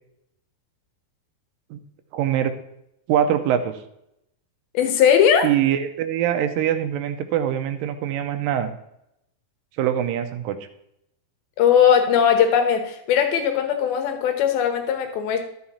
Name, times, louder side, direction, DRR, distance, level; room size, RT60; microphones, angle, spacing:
voice 1, 2.1-2.5 3.1-3.8 5.4-8.7 9.8-10.6, right 10 dB, 80° right, 8 dB, 2.3 m, -23 dB
voice 2, 4.7-5.5 11.6-15.4, left 8 dB, 80° left, 7 dB, 3.0 m, -19 dB
13.0 x 5.9 x 4.2 m, 0.79 s
omnidirectional pair, 4.3 m